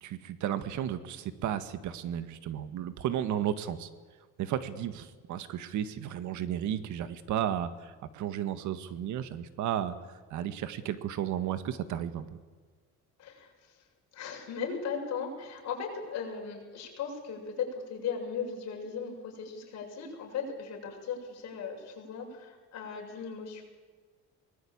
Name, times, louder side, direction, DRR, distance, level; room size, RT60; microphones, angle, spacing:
voice 1, 0.0-3.9 4.4-10.0 10.3-12.4, right 10 dB, 70° right, 11 dB, 1.8 m, -33 dB
voice 2, 13.2-13.8 14.1-23.6, left 6 dB, 55° left, -1 dB, 7.4 m, -37 dB
24.0 x 20.0 x 8.9 m, 1.4 s
cardioid pair, 145°, 31 cm